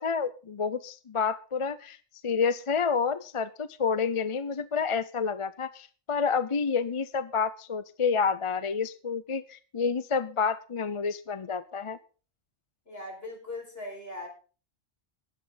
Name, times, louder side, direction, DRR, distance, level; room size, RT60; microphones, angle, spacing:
voice 1, 0.0-2.0 2.2-12.0, left 5 dB, 35° left, 15 dB, 0.6 m, -29 dB
voice 2, 12.9-14.3, left 2 dB, 60° left, 1 dB, 5.7 m, -39 dB
16.5 x 11.0 x 3.9 m, 0.38 s
omnidirectional pair, 1.1 m